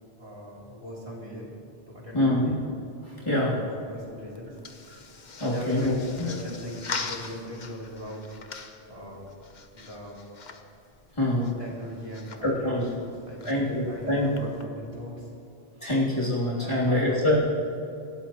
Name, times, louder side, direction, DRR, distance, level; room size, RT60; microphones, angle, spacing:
voice 1, 0.2-1.5 1.9-2.7 3.3-4.6 5.5-8.4 8.9-9.3 9.7-10.2 11.3-15.3 16.6-17.4, equal, 30° right, -5 dB, 3.2 m, -40 dB
voice 2, 2.1-2.5 3.0-3.5 5.4-6.3 11.2-11.4 12.4-12.8 13.4-14.3 15.8-17.4, left 1 dB, 25° left, -7 dB, 3.2 m, -25 dB
sound 1, 3.7-14.6, left 4 dB, 45° left, 1.0 m, -42 dB
27.0 x 13.0 x 3.1 m, 2.6 s
omnidirectional pair, 1.1 m